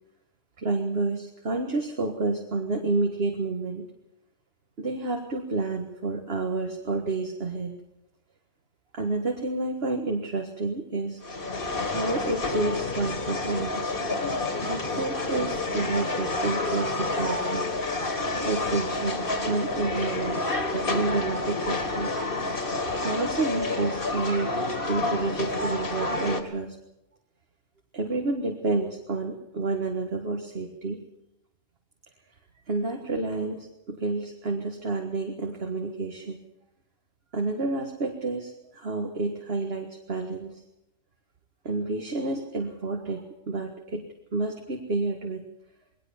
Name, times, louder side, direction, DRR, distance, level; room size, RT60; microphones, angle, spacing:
voice 1, 0.6-3.9 4.8-7.8 8.9-11.2 11.9-13.9 14.6-17.7 18.4-22.1 23.0-24.6 24.8-26.8 27.9-31.0 32.7-36.4 37.3-40.6 41.6-45.4, right 3 dB, 60° right, 3 dB, 2.0 m, -29 dB
sound 1, 11.2-26.4, left 2 dB, 50° left, 2.2 m, -29 dB
20.5 x 19.0 x 7.2 m, 0.86 s
omnidirectional pair, 1.2 m